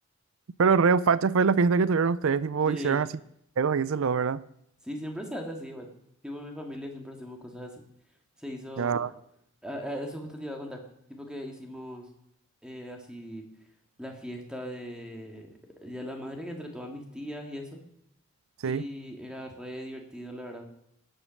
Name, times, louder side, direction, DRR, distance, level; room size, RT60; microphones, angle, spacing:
voice 1, 0.6-3.1 3.6-4.4 8.8-9.1 18.6-18.8, right 5 dB, 75° right, 0.5 m, -23 dB
voice 2, 2.6-3.0 4.8-5.9 6.2-7.8 8.4-9.0 9.6-10.8 11.1-12.1 12.6-13.4 14.0-15.5 15.8-17.8 18.6-20.7, equal, 5° right, 2.0 m, -39 dB
17.5 x 9.1 x 6.5 m
head